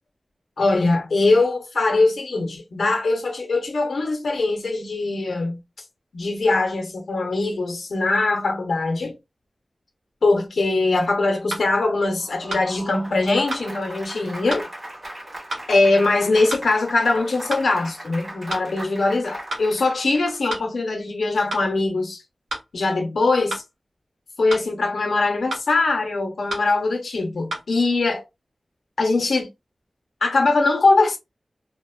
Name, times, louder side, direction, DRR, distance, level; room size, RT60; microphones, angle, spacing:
voice 1, 0.6-5.6 6.1-9.1 10.2-14.7 15.7-22.2 22.7-23.6 24.4-28.2 29.0-29.5 30.2-31.2, left 3 dB, 85° left, 0.6 m, -21 dB
sound 1, 10.7-10.8 11.5-11.7 12.5-12.7 13.5-13.7 14.5-14.7 15.5-15.7 16.5-16.7 17.5-17.7 18.5-18.7 19.5-19.7 20.5-20.7 21.5-21.7 22.5-22.7 23.5-23.7 24.5-24.7 25.5-25.7 26.5-26.7 27.5-27.7, right 1 dB, 85° right, 0.9 m, -30 dB
Applause, 12.0-20.7, right 1 dB, 45° right, 1.2 m, -39 dB
2.8 x 2.1 x 2.2 m
wide cardioid pair, 75°, 0 cm